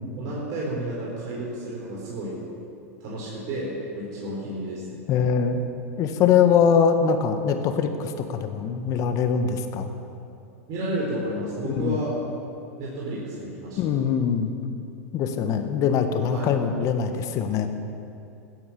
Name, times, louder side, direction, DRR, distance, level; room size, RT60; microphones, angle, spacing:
voice 1, 0.2-2.4 3.0-5.0 10.7-12.1 12.8-13.8 16.3-16.5, right 1 dB, 50° right, -5 dB, 4.0 m, -31 dB
voice 2, 5.1-5.6 6.0-9.9 11.6-12.0 13.8-14.5 15.1-17.7, left 7 dB, 45° left, 7 dB, 1.5 m, -22 dB
15.5 x 9.7 x 7.1 m, 2.6 s
hypercardioid pair, 95°, 8 cm